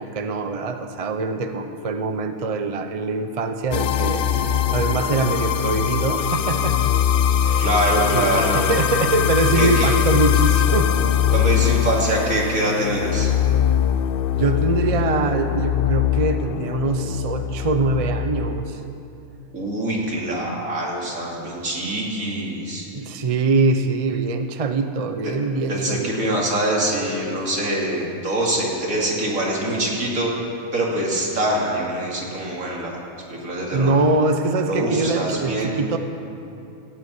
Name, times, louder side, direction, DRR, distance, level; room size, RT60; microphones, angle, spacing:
voice 1, 0.0-6.9 7.4-7.7 8.1-10.9 14.3-18.8 22.9-26.4 33.7-36.0, right 3 dB, 35° right, 7 dB, 0.6 m, -23 dB
sound 1, 3.7-18.9, left 9 dB, 75° left, 0.5 m, -21 dB
voice 2, 7.6-8.6 9.5-9.9 11.3-13.3 19.5-22.9 25.7-30.3 30.7-33.0 33.3-34.0 34.7-35.8, right 1 dB, 75° right, -3 dB, 3.1 m, -24 dB
15.5 x 8.6 x 8.4 m, 2.7 s
omnidirectional pair, 1.5 m